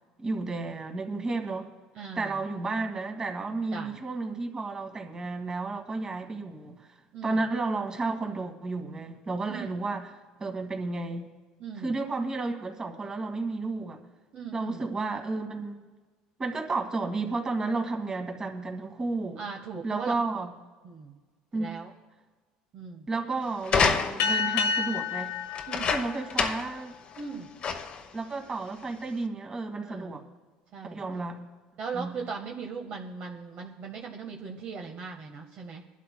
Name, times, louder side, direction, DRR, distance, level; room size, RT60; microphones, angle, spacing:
voice 1, 0.2-1.7 2.2-7.0 7.2-10.1 10.4-11.2 11.8-14.0 14.5-15.9 16.4-19.4 19.8-20.5 21.5-21.7 23.1-25.4 25.9-27.0 28.1-30.2 30.9-31.4 31.9-32.2, right 3 dB, 25° right, 4 dB, 1.8 m, -32 dB
voice 2, 1.9-2.4 3.7-3.9 7.1-7.4 9.5-9.8 11.6-12.0 14.3-14.9 19.4-20.2 20.8-21.2 21.5-21.9 22.7-23.1 25.7-25.9 27.2-27.5 29.8-30.2 30.7-31.0 31.8-35.8, right 5 dB, 50° right, 1 dB, 1.3 m, -39 dB
sound 1, 23.6-24.4 25.5-26.8 27.2-27.3 27.6-28.1 28.8-28.9, left 5 dB, 40° left, 1.0 m, -27 dB
sound 2, 24.2-27.1, left 5 dB, 80° left, 1.3 m, -30 dB
23.5 x 11.5 x 2.2 m, 1.3 s
supercardioid pair, 110°, 3 cm